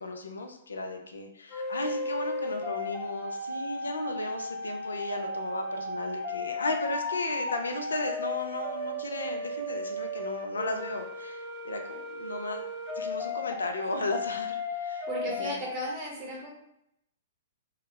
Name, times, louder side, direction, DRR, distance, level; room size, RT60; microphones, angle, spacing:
voice 1, 0.0-12.6 12.9-15.1 15.4-15.6, left 2 dB, 80° left, 4 dB, 0.4 m, -35 dB
sound 1, 1.5-15.9, left 2 dB, 15° left, 0.5 m, -35 dB
voice 2, 15.1-16.5, right 1 dB, 35° right, -2 dB, 1.0 m, -35 dB
2.3 x 2.0 x 3.2 m, 0.76 s
hypercardioid pair, 120°, 0 cm